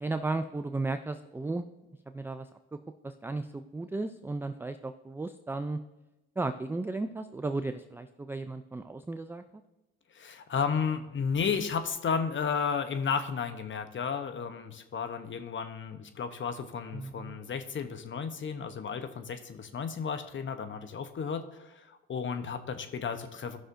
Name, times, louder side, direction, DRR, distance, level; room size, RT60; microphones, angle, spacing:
voice 1, 0.0-1.7 2.1-2.5 3.0-5.8 6.4-9.4 16.9-17.4, right 2 dB, 10° right, 9 dB, 0.4 m, -34 dB
voice 2, 10.1-23.6, left 6 dB, 40° left, 9 dB, 0.9 m, -33 dB
14.0 x 6.2 x 2.6 m, 0.99 s
supercardioid pair, 65°, 29 cm